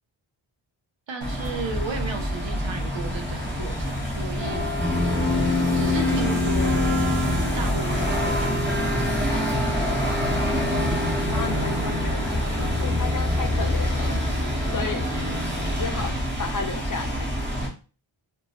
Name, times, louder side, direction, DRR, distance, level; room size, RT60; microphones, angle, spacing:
voice 1, 1.1-4.6 5.7-6.8 7.5-9.5, right 3 dB, 65° right, 0.7 m, -34 dB
sound 1, 1.2-17.7, equal, 20° right, 0.9 m, -26 dB
sound 2, 1.9-16.2, left 1 dB, 40° right, 1.3 m, -36 dB
sound 3, 4.7-8.4, left 3 dB, 5° left, 1.0 m, -26 dB
voice 2, 10.3-14.3 14.7-15.1 15.8-16.1 16.4-17.3, left 5 dB, 40° left, 0.5 m, -33 dB
2.9 x 2.2 x 2.7 m
wide cardioid pair, 55°, 50 cm